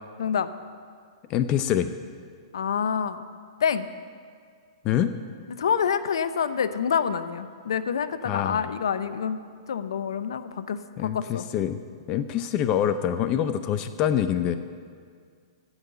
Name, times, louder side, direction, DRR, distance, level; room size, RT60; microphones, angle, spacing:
voice 1, 0.2-0.5 2.5-3.2 3.6-3.9 5.5-9.4 9.7-11.5, left 7 dB, 75° left, 13 dB, 0.6 m, -27 dB
voice 2, 1.3-1.9 4.8-5.1 8.3-8.6 11.0-11.8 12.1-14.6, left 10 dB, 35° left, 10 dB, 0.6 m, -25 dB
14.0 x 5.6 x 8.9 m, 2.1 s
hypercardioid pair, 120°, 3 cm